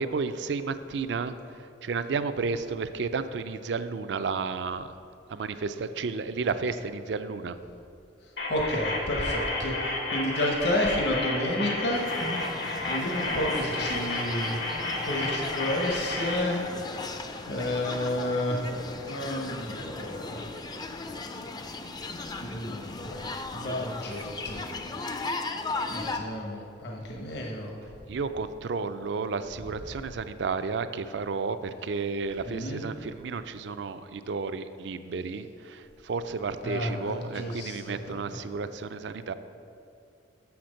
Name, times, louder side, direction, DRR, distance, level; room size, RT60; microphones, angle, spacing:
voice 1, 0.0-1.3 1.8-4.9 5.3-7.6 28.1-39.3, right 4 dB, 65° right, 11 dB, 0.4 m, -32 dB
sound 1, 8.4-16.4, left 2 dB, 85° left, 1.7 m, -32 dB
voice 2, 8.5-9.7 10.1-12.0 12.9-14.6 15.0-16.6 17.5-18.6 19.1-20.4 22.4-23.2 23.5-24.6 25.9-27.7 32.5-32.8 36.6-38.1, left 1 dB, 65° left, -1 dB, 1.0 m, -30 dB
sound 2, 11.9-26.2, left 3 dB, 20° left, 0.4 m, -37 dB
6.9 x 5.9 x 6.4 m, 2.6 s
head